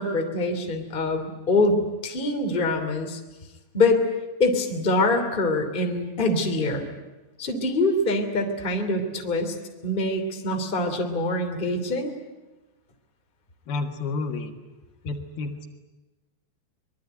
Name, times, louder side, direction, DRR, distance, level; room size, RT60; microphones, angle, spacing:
voice 1, 0.0-3.2 3.7-4.1 4.4-6.9 7.4-9.5 9.8-12.1, left 2 dB, 15° left, 4 dB, 2.3 m, -24 dB
voice 2, 13.7-14.5 15.0-15.7, left 3 dB, 65° left, 4 dB, 3.5 m, -30 dB
24.5 x 22.5 x 9.3 m, 1.1 s
omnidirectional pair, 5.0 m